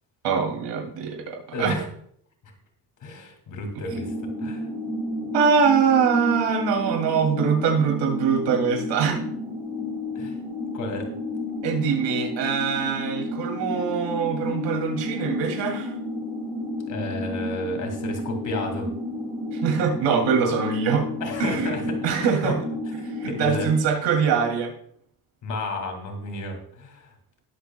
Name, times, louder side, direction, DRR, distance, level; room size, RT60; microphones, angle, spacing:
voice 1, 0.2-1.8 5.3-9.2 11.6-15.9 19.5-21.1 21.4-21.7 22.0-22.6 23.2-24.7, right 6 dB, 85° right, 1 dB, 2.6 m, -23 dB
voice 2, 1.5-1.9 2.4-2.5 3.0-4.7 10.1-10.4 10.7-11.1 16.9-18.9 21.2-22.6 23.0-23.7 25.4-27.1, left 2 dB, 45° left, 4 dB, 2.3 m, -32 dB
sound 1, 3.9-23.8, left 2 dB, 10° right, 1.4 m, -31 dB
19.5 x 7.2 x 2.2 m, 0.65 s
cardioid pair, 180°, 42 cm